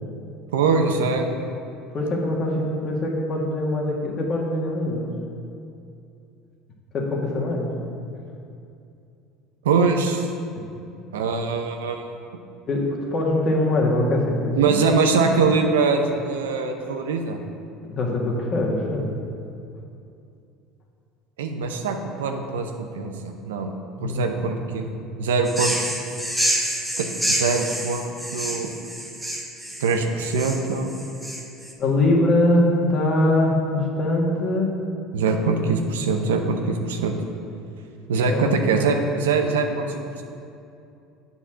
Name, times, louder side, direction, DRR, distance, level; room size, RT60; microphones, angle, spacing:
voice 1, 0.5-1.3 9.6-10.3 11.1-12.0 14.5-17.4 21.4-23.7 24.0-24.9 25.2-25.8 27.0-28.1 28.3-28.7 29.8-30.9 35.1-37.2 38.1-40.2, right 4 dB, 90° right, 4 dB, 0.7 m, -23 dB
voice 2, 1.9-5.1 6.9-7.7 12.7-12.8 13.1-14.8 17.9-19.1 24.0-24.6 24.9-25.1 31.8-34.7 38.3-38.5, left 1 dB, 45° left, -2 dB, 1.8 m, -22 dB
sound 1, 25.5-31.7, right 1 dB, 5° right, 1.2 m, -28 dB
8.2 x 4.2 x 6.1 m, 2.6 s
hypercardioid pair, 85°, 0 cm